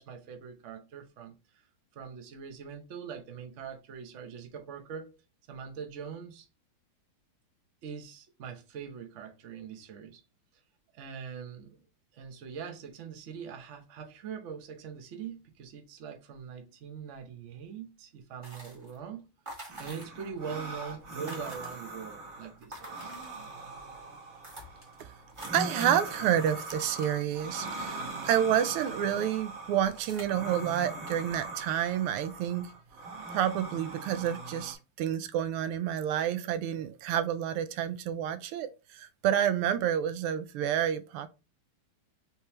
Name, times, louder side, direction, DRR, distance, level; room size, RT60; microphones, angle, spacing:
voice 1, 0.0-1.4 1.9-5.1 5.5-6.5 7.8-10.2 10.9-11.8 12.1-19.3 19.8-23.1, right 7 dB, 65° right, 0.7 m, -42 dB
sound 1, 18.4-19.0 19.5-20.4 20.7-20.8 21.0-22.1 22.6-23.7 24.1-24.2 24.4-28.7 29.1-29.4 29.8-30.2, right 1 dB, 15° right, 1.3 m, -48 dB
sound 2, 19.7-34.7, right 2 dB, 50° right, 1.2 m, -41 dB
voice 2, 25.5-32.7 33.3-41.3, right 10 dB, 85° right, 1.5 m, -29 dB
4.2 x 3.7 x 2.9 m
omnidirectional pair, 2.4 m